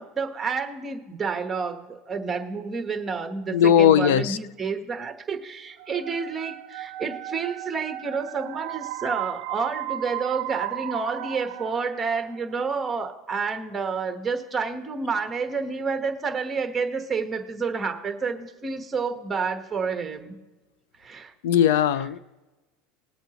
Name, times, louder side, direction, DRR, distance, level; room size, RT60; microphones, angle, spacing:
voice 1, 0.0-20.4 21.0-21.3, right 5 dB, 15° right, 1.2 m, -29 dB
voice 2, 3.5-4.4 21.4-22.2, left 9 dB, 85° left, 0.6 m, -18 dB
sound 1, 5.8-12.6, right 15 dB, 70° right, 0.6 m, -35 dB
21.0 x 8.2 x 3.0 m
supercardioid pair, 150°, 0 cm